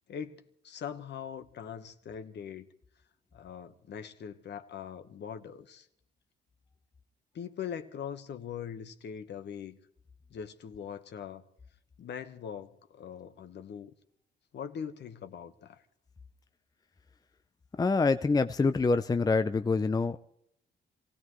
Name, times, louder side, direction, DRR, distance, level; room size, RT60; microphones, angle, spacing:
voice 1, 0.1-2.7 3.3-5.9 7.3-9.8 10.3-11.4 12.0-13.9 14.5-15.8, left 8 dB, 60° left, 1.3 m, -41 dB
voice 2, 17.8-20.2, left 4 dB, 20° left, 0.5 m, -26 dB
27.0 x 16.5 x 3.1 m
cardioid pair, 90°, 20 cm